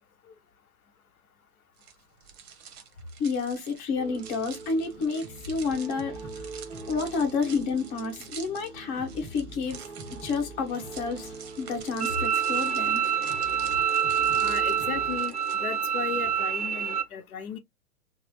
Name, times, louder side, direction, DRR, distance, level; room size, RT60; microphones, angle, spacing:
sound 1, 1.8-15.6, right 7 dB, 45° right, 0.9 m, -47 dB
voice 1, 3.2-6.5 6.9-9.8 10.2-13.0, left 4 dB, 25° left, 0.9 m, -30 dB
sound 2, 4.0-15.2, right 3 dB, 10° right, 0.8 m, -42 dB
Bowed string instrument, 12.0-17.0, right 8 dB, 30° right, 0.4 m, -26 dB
voice 2, 14.4-15.3 15.6-17.6, left 7 dB, 65° left, 0.7 m, -35 dB
3.2 x 2.0 x 2.9 m
hypercardioid pair, 125°, 46 cm